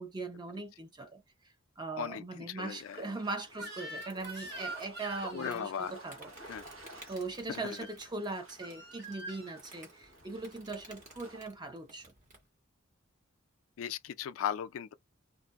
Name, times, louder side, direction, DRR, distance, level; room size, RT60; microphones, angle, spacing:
voice 1, 0.0-6.6 7.1-12.1, right 3 dB, 20° right, 0.6 m, -40 dB
voice 2, 2.0-3.1 5.3-5.9 6.5-6.6 7.5-7.8 13.8-14.9, left 8 dB, 80° left, 0.4 m, -37 dB
sound 1, 2.6-11.5, right 1 dB, 80° right, 1.2 m, -54 dB
Crying sobbing / Screech, 3.5-5.7 7.6-8.0 8.6-9.6, right 2 dB, 55° right, 1.3 m, -44 dB
Insect, 4.0-12.5, right 2 dB, 40° right, 1.2 m, -57 dB
2.6 x 2.4 x 2.4 m
head